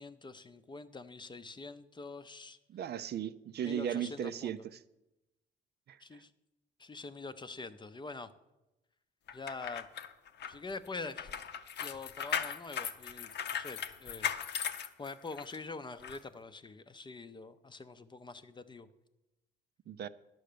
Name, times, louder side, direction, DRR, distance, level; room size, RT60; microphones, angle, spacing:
voice 1, 0.0-2.6 3.6-4.7 6.0-6.3 6.8-8.3 9.3-9.9 10.5-11.3 11.8-14.3 15.0-18.9, left 3 dB, 25° left, 11 dB, 0.6 m, -45 dB
voice 2, 2.7-4.8 5.9-6.2 19.9-20.1, right 9 dB, 55° right, 13 dB, 0.5 m, -37 dB
sound 1, 9.3-15.6 16.0-16.2, left 8 dB, 60° left, 0.7 m, -38 dB
10.5 x 6.3 x 6.8 m, 0.97 s
cardioid pair, 90°, 20 cm